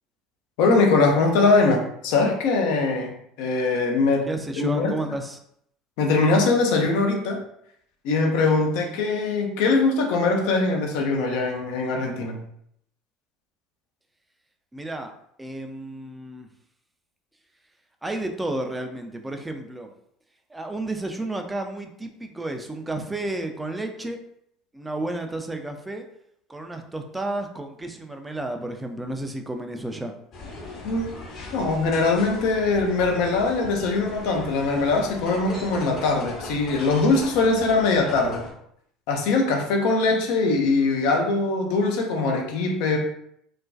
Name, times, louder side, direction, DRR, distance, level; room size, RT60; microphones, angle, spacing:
voice 1, 0.6-3.1 3.4-4.3 4.6-4.9 6.0-7.4 8.0-12.4 30.8-31.1 31.5-38.4 39.1-43.0, left 3 dB, 60° left, 2 dB, 0.5 m, -22 dB
voice 2, 4.3-5.4 14.7-15.1 15.4-16.5 18.0-19.9 20.5-24.2 24.7-26.1 26.5-30.1, right 2 dB, 10° right, 5 dB, 0.4 m, -32 dB
sound 1, 30.3-38.5, left 2 dB, 45° left, 0.9 m, -38 dB
2.4 x 2.2 x 2.3 m, 0.72 s
figure-of-eight pair, 65°, 0 cm